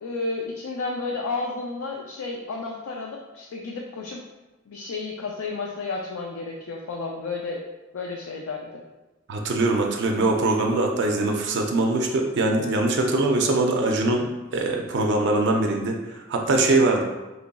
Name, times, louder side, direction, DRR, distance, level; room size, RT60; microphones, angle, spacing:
voice 1, 0.0-4.2 4.7-7.6 7.9-8.8, left 3 dB, 70° left, -1 dB, 0.4 m, -32 dB
voice 2, 9.3-17.0, right 2 dB, 55° right, 2 dB, 0.4 m, -22 dB
3.9 x 3.0 x 2.2 m, 1.1 s
head